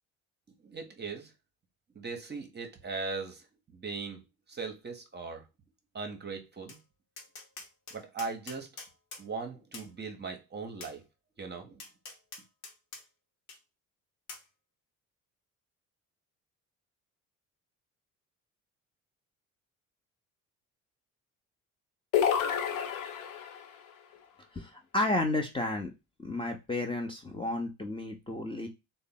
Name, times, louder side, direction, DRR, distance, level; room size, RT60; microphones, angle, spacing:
voice 1, 0.6-1.3 1.9-3.5 3.7-4.2 4.5-5.4 5.9-6.8 7.9-8.8 9.2-11.0 11.4-11.8, right 4 dB, 25° right, 0.9 m, -39 dB
Tap, 6.7-6.8 7.2-9.2 9.7-9.9 10.8-10.9 11.8-13.0 13.5-13.6 14.3-14.4, left 3 dB, 80° left, 0.9 m, -45 dB
sound 1, 22.1-23.7, left 8 dB, 50° left, 0.7 m, -29 dB
voice 2, 24.5-25.9 26.2-28.7, left 2 dB, 10° left, 0.7 m, -32 dB
3.7 x 2.1 x 3.6 m
figure-of-eight pair, 50°, 42 cm